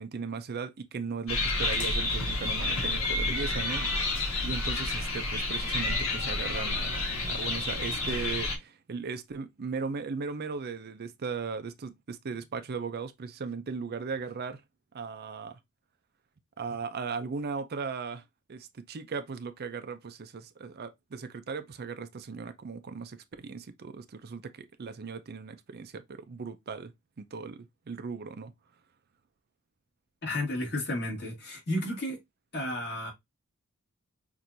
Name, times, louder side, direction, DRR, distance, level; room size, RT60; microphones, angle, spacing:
voice 1, 0.0-14.6 14.9-15.6 16.6-18.2 18.5-26.9 27.2-28.5, right 5 dB, 50° right, 0.5 m, -37 dB
sound 1, 1.3-8.6, left 2 dB, 75° left, 1.6 m, -30 dB
voice 2, 30.2-32.2 32.5-33.1, left 1 dB, 55° left, 2.1 m, -32 dB
6.0 x 2.6 x 2.6 m
head